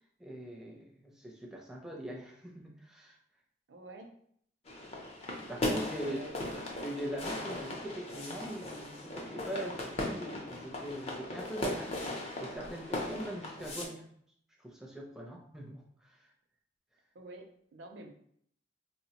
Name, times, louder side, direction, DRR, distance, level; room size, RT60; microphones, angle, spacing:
voice 1, 0.2-3.2 5.5-6.2 6.8-12.0 12.4-14.1 14.6-15.8, right 1 dB, 5° right, -1 dB, 0.5 m, -41 dB
voice 2, 3.7-4.1 5.8-6.5 17.1-18.1, right 2 dB, 75° right, 4 dB, 0.5 m, -48 dB
sound 1, 4.7-13.9, left 1 dB, 35° left, 0.6 m, -38 dB
4.2 x 2.1 x 2.8 m, 0.66 s
head